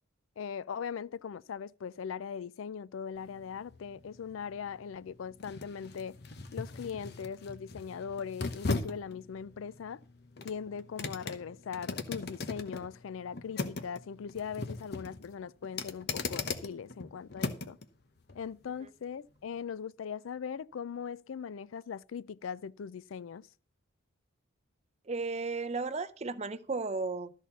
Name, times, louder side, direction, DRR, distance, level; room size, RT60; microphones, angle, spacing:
voice 1, 0.4-6.2 6.5-10.0 10.4-17.8 18.3-23.5, left 7 dB, 75° left, 0.4 m, -40 dB
sound 1, 3.2-17.8 18.3-18.4, left 3 dB, 50° left, 0.9 m, -39 dB
voice 2, 25.1-27.3, right 3 dB, 30° right, 0.5 m, -34 dB
13.0 x 4.4 x 7.0 m
head